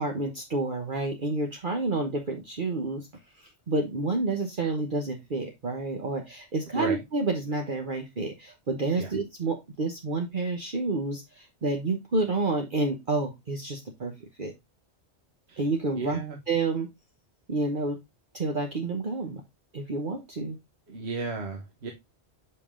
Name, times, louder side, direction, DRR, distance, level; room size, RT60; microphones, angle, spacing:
voice 1, 0.0-3.1 3.4-14.1 14.4-14.5 15.6-16.2 16.5-16.9 17.5-18.0 18.3-19.4 19.7-20.6, right 3 dB, 50° right, 2 dB, 1.2 m, -29 dB
voice 2, 15.9-16.4 20.9-21.9, right 3 dB, 65° right, 2 dB, 1.5 m, -33 dB
6.7 x 5.4 x 3.6 m, 0.20 s
omnidirectional pair, 1.2 m